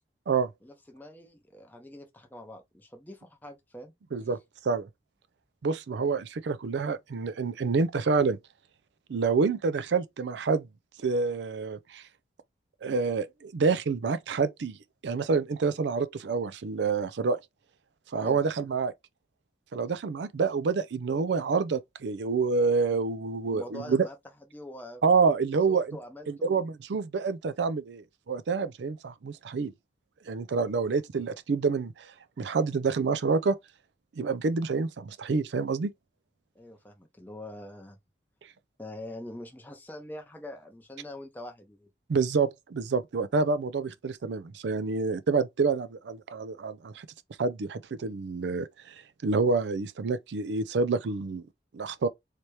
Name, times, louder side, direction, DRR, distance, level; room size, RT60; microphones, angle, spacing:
voice 1, 0.6-3.9 18.2-18.4 23.5-24.2 24.5-25.0 25.7-26.7 36.5-38.0 38.8-41.9, left 1 dB, 10° left, 0.6 m, -44 dB
voice 2, 5.6-8.4 9.1-10.7 11.0-12.0 12.8-14.8 15.0-17.4 18.1-18.9 19.7-24.1 25.0-26.0 26.3-29.7 30.3-32.1 32.4-33.6 34.2-35.9 42.1-47.1 47.4-48.9 49.2-51.4 51.7-52.1, right 4 dB, 80° right, 0.4 m, -27 dB
3.3 x 2.8 x 3.1 m
head